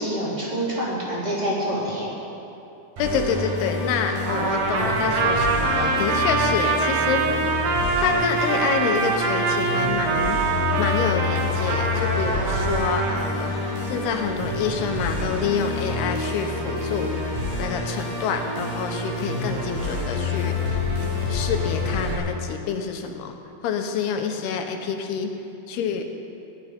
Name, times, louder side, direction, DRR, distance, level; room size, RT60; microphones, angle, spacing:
voice 1, 0.0-2.1, right 1 dB, 10° right, -7 dB, 3.3 m, -26 dB
voice 2, 3.0-7.4 8.0-10.4 10.8-13.6 13.9-17.2 17.6-23.4 23.6-25.3 25.7-26.0, left 6 dB, 90° left, 5 dB, 3.1 m, -27 dB
Musical instrument, 3.0-22.2, left 2 dB, 55° right, 5.7 m, -28 dB
Trumpet, 4.3-13.3, right 4 dB, 70° right, 2.9 m, -24 dB
18.5 x 12.0 x 5.2 m, 2.8 s
omnidirectional pair, 4.4 m